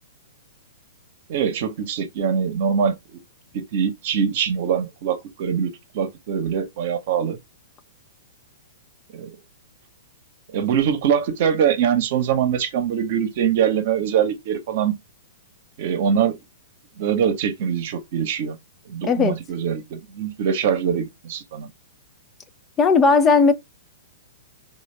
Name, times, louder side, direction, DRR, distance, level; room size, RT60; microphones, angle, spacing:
voice 1, 1.3-3.0 3.5-7.4 9.1-9.3 10.5-14.9 15.8-16.3 17.0-18.6 18.9-21.7, right 8 dB, 55° right, 0.8 m, -23 dB
voice 2, 19.0-19.4 22.8-23.5, left 4 dB, 25° left, 0.3 m, -16 dB
3.1 x 2.3 x 3.2 m
hypercardioid pair, 120°, 0 cm